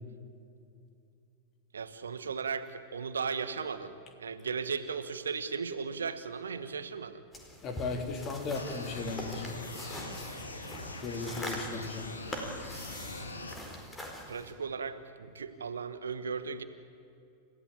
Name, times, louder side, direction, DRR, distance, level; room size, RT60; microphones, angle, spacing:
voice 1, 1.7-7.2 14.3-16.6, right 5 dB, 70° right, 12 dB, 1.3 m, -36 dB
sound 1, 7.3-14.5, equal, 15° left, 4.4 m, -43 dB
voice 2, 7.6-9.6 11.0-12.1, left 4 dB, 35° left, 5 dB, 3.2 m, -36 dB
sound 2, 8.5-13.5, left 2 dB, 75° left, 2.7 m, -42 dB
30.0 x 15.5 x 8.6 m, 2.6 s
figure-of-eight pair, 90°, 0 cm